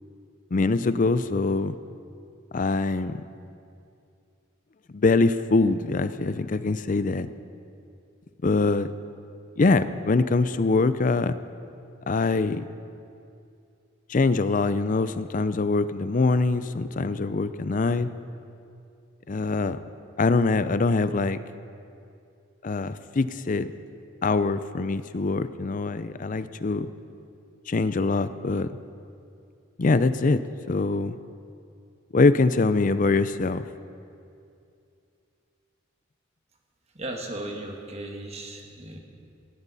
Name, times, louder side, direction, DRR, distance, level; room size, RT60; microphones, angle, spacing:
voice 1, 0.5-1.7 2.5-3.2 4.9-7.3 8.4-8.9 9.6-11.3 12.1-12.6 14.1-18.1 19.3-19.8 20.2-21.4 22.6-23.7 24.2-26.9 27.7-28.7 29.8-30.4 30.7-31.2 32.1-33.6, left 3 dB, 40° left, 13 dB, 0.5 m, -23 dB
voice 2, 36.9-39.0, right 1 dB, 30° right, 2 dB, 1.5 m, -36 dB
17.5 x 15.5 x 4.1 m, 2.5 s
head